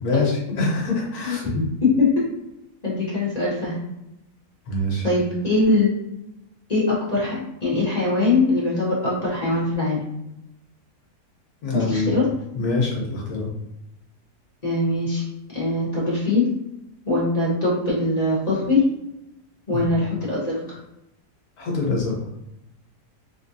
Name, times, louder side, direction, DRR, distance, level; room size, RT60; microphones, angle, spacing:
voice 1, 0.0-1.4 4.7-5.0 11.6-12.2 12.5-13.5 19.7-19.8 21.6-22.2, left 3 dB, 70° left, -1 dB, 1.4 m, -24 dB
voice 2, 1.2-2.2 2.8-3.8 5.0-5.9 6.7-10.0 11.7-12.2 14.6-15.2 15.5-16.5 17.0-18.8 19.7-20.8, left 2 dB, 25° left, -7 dB, 1.2 m, -22 dB
3.6 x 2.6 x 2.7 m, 0.86 s
omnidirectional pair, 1.7 m